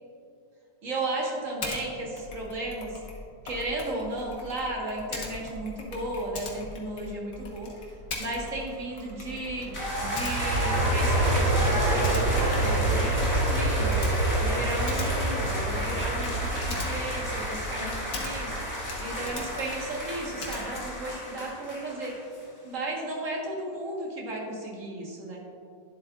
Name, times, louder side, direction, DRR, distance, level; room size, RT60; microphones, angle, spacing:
voice 1, 0.8-2.9 3.4-14.1 14.4-22.1 22.6-25.4, right 2 dB, 45° right, -2 dB, 1.7 m, -34 dB
Typing, 1.6-1.8 2.2-18.6 18.8-21.1, left 3 dB, 80° left, 1.9 m, -41 dB
Aircraft, 9.2-20.1 20.5-20.6, right 2 dB, 85° right, 1.4 m, -28 dB
sound 1, 9.7-22.4, left 1 dB, 10° left, 1.4 m, -33 dB
11.0 x 7.6 x 2.4 m, 2.4 s
omnidirectional pair, 2.0 m